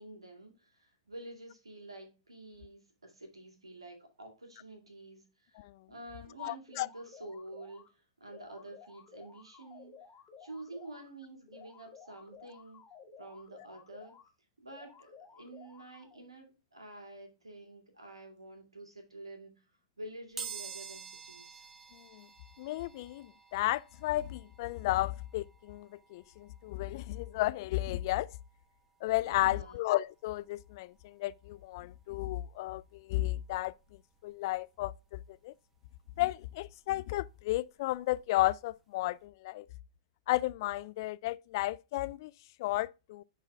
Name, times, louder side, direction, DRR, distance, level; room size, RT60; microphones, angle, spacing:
voice 1, 0.0-5.6 5.9-9.9 10.4-12.8 13.2-14.2 14.6-19.5 20.0-21.6 29.2-29.8, right 1 dB, 90° right, 2.1 m, -49 dB
voice 2, 6.4-6.9 21.9-22.3 22.6-28.3 29.0-33.7 34.2-35.5 36.2-39.7 40.3-42.3 42.6-43.2, left 17 dB, 50° left, 0.3 m, -33 dB
sound 1, 6.7-7.9 8.3-11.1 11.5-14.3 14.7-16.3, left 6 dB, 25° left, 1.5 m, -55 dB
sound 2, 20.4-31.0 31.5-31.6 32.7-32.9 33.1-35.2 35.6-38.2 38.6-38.7 39.1-39.2, right 6 dB, 15° right, 1.2 m, -50 dB
11.0 x 4.0 x 2.3 m
figure-of-eight pair, 105°, 3 cm